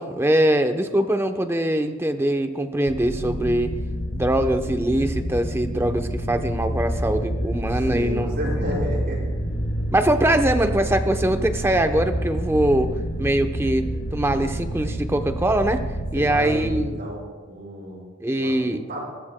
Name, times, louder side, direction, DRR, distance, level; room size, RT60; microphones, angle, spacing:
voice 1, 0.0-3.7 4.1-8.3 9.9-12.9 13.2-15.9 16.1-17.0 18.2-18.8, right 1 dB, 10° right, 7 dB, 0.8 m, -22 dB
sound 1, 2.9-16.9, right 1 dB, 75° left, 2.7 m, -28 dB
voice 2, 7.7-9.4 16.1-17.2 17.4-18.0 18.4-19.1, equal, 55° right, -3 dB, 5.4 m, -31 dB
23.0 x 19.0 x 2.2 m, 1.4 s
head